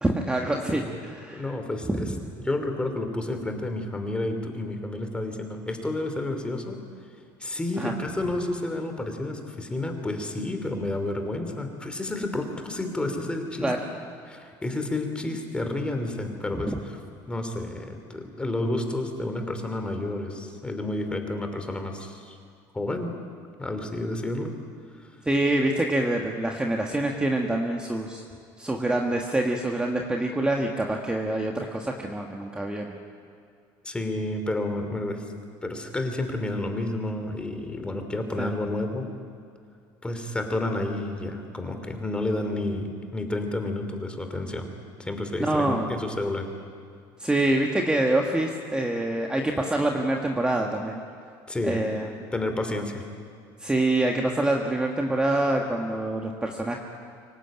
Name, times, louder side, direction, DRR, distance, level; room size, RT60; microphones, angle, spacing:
voice 1, 0.0-1.5 1.9-2.1 7.8-8.0 13.6-13.8 16.5-16.8 25.2-28.2 28.6-32.9 38.4-38.5 45.4-45.9 47.2-51.0 51.6-52.2 53.6-56.8, right 1 dB, 10° right, 1 dB, 1.6 m, -26 dB
voice 2, 1.3-2.1 2.4-6.8 7.4-13.7 14.3-17.0 17.3-22.4 22.7-23.1 23.6-24.5 25.0-25.1 33.8-35.2 35.6-39.1 40.0-44.7 45.0-46.5 51.5-51.8 52.3-53.0, left 2 dB, 10° left, 6 dB, 2.8 m, -30 dB
24.5 x 18.0 x 8.9 m, 2.3 s
cardioid pair, 135°, 9 cm